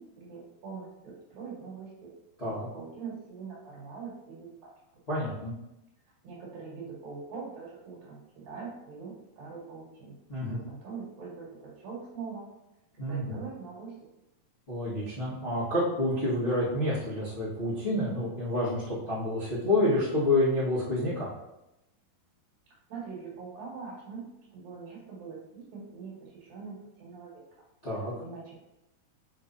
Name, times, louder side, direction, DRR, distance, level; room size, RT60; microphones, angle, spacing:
voice 1, 0.0-2.1 2.4-4.7 6.2-10.2 10.4-12.5 13.0-13.9 22.9-24.2 24.5-27.4 28.2-28.6, right 5 dB, 70° right, -5 dB, 4.0 m, -43 dB
voice 2, 5.1-5.5 10.3-10.6 13.0-13.4 14.7-21.3 27.8-28.1, left 1 dB, 85° left, -10 dB, 0.5 m, -28 dB
7.7 x 4.6 x 2.7 m, 0.92 s
omnidirectional pair, 4.3 m